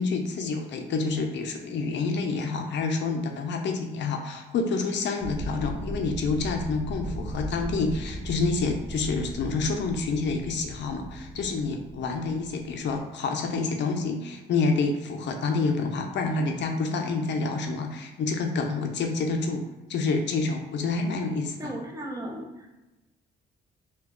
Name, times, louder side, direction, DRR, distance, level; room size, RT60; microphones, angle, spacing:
voice 1, 0.0-21.7, left 4 dB, 65° left, 4 dB, 0.5 m, -28 dB
sound 1, 5.2-13.0, right 1 dB, 5° left, 1.1 m, -37 dB
voice 2, 21.6-22.8, right 1 dB, 15° right, -1 dB, 0.6 m, -36 dB
2.9 x 2.3 x 3.6 m, 1.0 s
cardioid pair, 90°, 20 cm